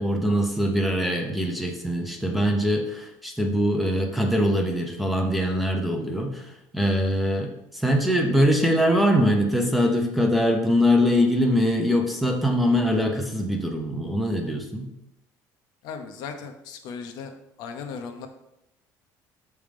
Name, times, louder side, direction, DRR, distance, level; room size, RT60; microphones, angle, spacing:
voice 1, 0.0-14.9, equal, ahead, 1 dB, 0.7 m, -23 dB
voice 2, 15.8-17.3 17.6-18.3, left 6 dB, 70° left, 5 dB, 0.8 m, -37 dB
6.2 x 3.5 x 5.1 m, 0.85 s
cardioid pair, 150°, 7 cm